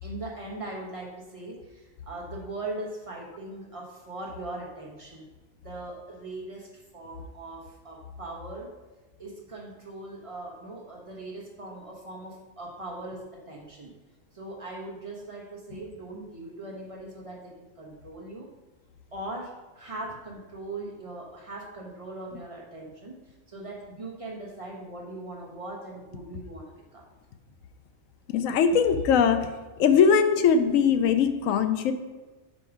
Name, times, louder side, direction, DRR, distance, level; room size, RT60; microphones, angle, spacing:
voice 1, 0.0-5.3 5.6-8.8 9.2-13.9 14.3-18.5 19.1-27.1, right 2 dB, 30° right, -2 dB, 1.0 m, -40 dB
voice 2, 28.3-29.5 29.8-31.9, left 6 dB, 80° left, 9 dB, 1.0 m, -21 dB
5.2 x 4.6 x 4.9 m, 1.2 s
omnidirectional pair, 1.4 m